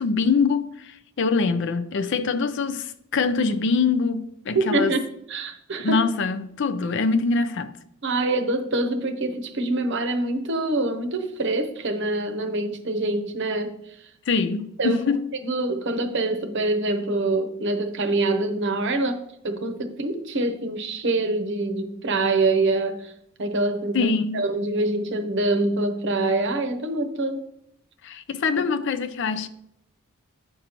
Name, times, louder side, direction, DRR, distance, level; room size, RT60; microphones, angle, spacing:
voice 1, 0.0-4.9 5.8-7.7 14.3-15.2 23.9-24.5 28.0-29.5, left 4 dB, 55° left, 0.4 m, -24 dB
voice 2, 4.5-5.0 5.3-6.0 8.0-13.8 14.8-15.0 15.4-23.1 23.4-27.4, right 2 dB, 50° right, 0.8 m, -25 dB
7.9 x 6.4 x 2.9 m
head